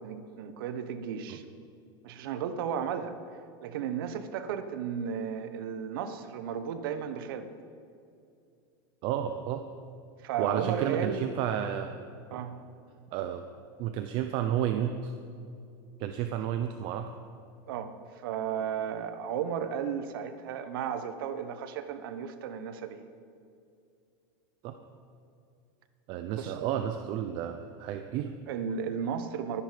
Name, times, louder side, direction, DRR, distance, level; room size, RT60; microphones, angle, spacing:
voice 1, 0.0-1.4 2.0-3.1 3.6-7.5 10.2-11.3 12.3-12.6 17.7-17.9 18.2-23.0 26.3-26.7 28.5-29.6, right 7 dB, 70° right, 9 dB, 1.3 m, -34 dB
voice 2, 9.0-9.6 10.4-12.0 12.3-12.4 13.1-13.4 13.8-15.1 16.0-17.1 24.6-24.7 26.1-28.3, right 10 dB, 40° right, 7 dB, 0.7 m, -31 dB
22.5 x 10.0 x 5.1 m, 2.5 s
supercardioid pair, 160°, 12 cm